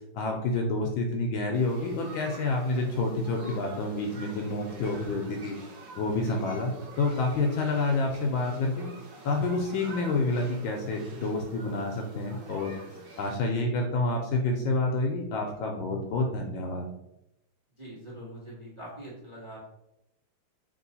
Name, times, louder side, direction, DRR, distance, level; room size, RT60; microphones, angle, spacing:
voice 1, 0.1-5.5 6.0-8.9 9.2-12.8 13.2-16.9, left 2 dB, 75° left, 2 dB, 1.3 m, -28 dB
sound 1, 1.5-13.3, right 1 dB, 65° right, 1.7 m, -46 dB
voice 2, 17.8-19.7, right 1 dB, 15° right, -6 dB, 1.3 m, -43 dB
3.6 x 3.0 x 4.0 m, 0.85 s
omnidirectional pair, 2.4 m